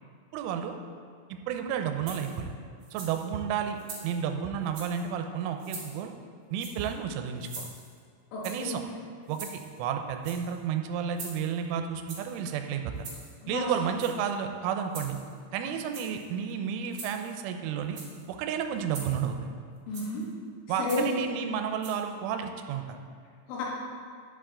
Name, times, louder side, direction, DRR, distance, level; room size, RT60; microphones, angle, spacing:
voice 1, 0.3-0.8 1.3-2.5 2.9-6.1 6.5-7.7 8.4-8.8 9.3-13.1 13.5-15.2 15.5-18.0 18.3-19.5 20.7-23.0, right 8 dB, 85° right, 5 dB, 3.1 m, -32 dB
sound 1, 2.1-2.4 2.8-3.3 3.8-4.2 4.6-5.0 5.6-6.0 6.6-6.9 7.4-8.0 8.4-8.8 9.3-9.8 10.1-10.6 11.2-11.6 12.1-12.4 13.0-13.3 13.9-14.4 14.9-15.4 15.8-16.3 16.9-17.3 17.8-18.2 18.9-19.3 19.9-20.2 20.9-21.2 21.8-21.9, right 3 dB, 60° right, 1.5 m, -43 dB
voice 2, 8.3-8.8 13.4-13.7 19.9-20.2 20.8-21.1 23.5-23.6, left 3 dB, 80° left, -5 dB, 4.4 m, -31 dB
11.0 x 7.8 x 3.8 m, 2.1 s
omnidirectional pair, 5.6 m